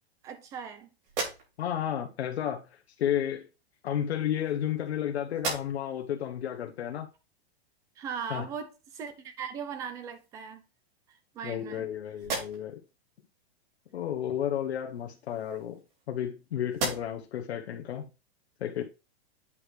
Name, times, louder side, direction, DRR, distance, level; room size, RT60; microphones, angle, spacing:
voice 1, 0.2-0.9 8.0-10.6 11.1-11.9, right 6 dB, 10° right, 0.4 m, -39 dB
sound 1, 1.0-1.9 3.0-3.2 4.1-5.0 5.3-6.0 6.5-6.6 9.3-9.4 9.8-10.5 11.1-11.8 12.2-12.9 14.9-16.3 16.7-17.4, right 3 dB, 65° right, 4.5 m, -38 dB
voice 2, 1.6-2.6 3.0-3.5 3.8-7.1 8.3-8.5 11.4-12.8 13.9-15.8 16.1-18.0 18.6-18.8, left 10 dB, 90° left, 1.0 m, -32 dB
8.5 x 5.0 x 3.1 m
supercardioid pair, 160°, 31 cm